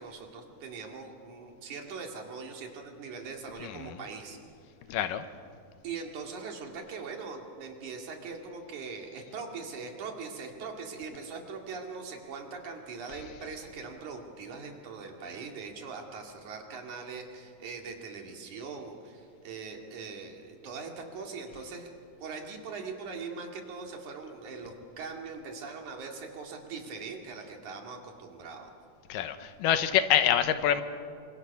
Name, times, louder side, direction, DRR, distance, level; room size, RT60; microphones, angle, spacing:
voice 1, 0.0-4.4 5.8-21.9 22.2-28.7, right 4 dB, 65° right, 2 dB, 3.6 m, -41 dB
voice 2, 4.9-5.2 29.1-30.8, left 10 dB, 90° left, 10 dB, 2.7 m, -26 dB
28.5 x 24.0 x 6.0 m, 2.3 s
omnidirectional pair, 3.8 m